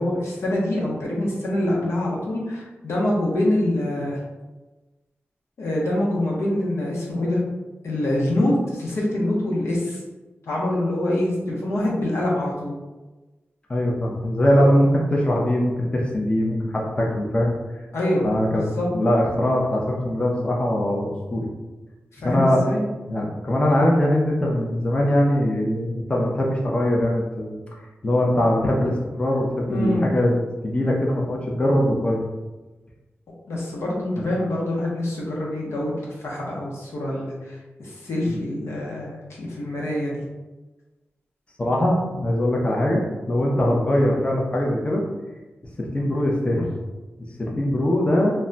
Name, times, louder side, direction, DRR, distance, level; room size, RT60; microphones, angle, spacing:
voice 1, 0.0-4.2 5.6-7.4 7.8-10.0 10.5-12.7 17.9-18.9 22.1-22.9 29.7-30.0 33.5-40.2, left 1 dB, 85° left, -4 dB, 0.7 m, -25 dB
voice 2, 13.7-17.5 18.2-21.5 22.2-22.6 23.1-27.5 28.0-30.4 30.6-32.2 38.3-38.4 41.6-43.0 43.3-45.0 45.8-46.7 47.4-48.3, left 1 dB, 25° left, -2 dB, 0.5 m, -21 dB
2.2 x 2.1 x 3.8 m, 1.1 s
wide cardioid pair, 90°, 4 cm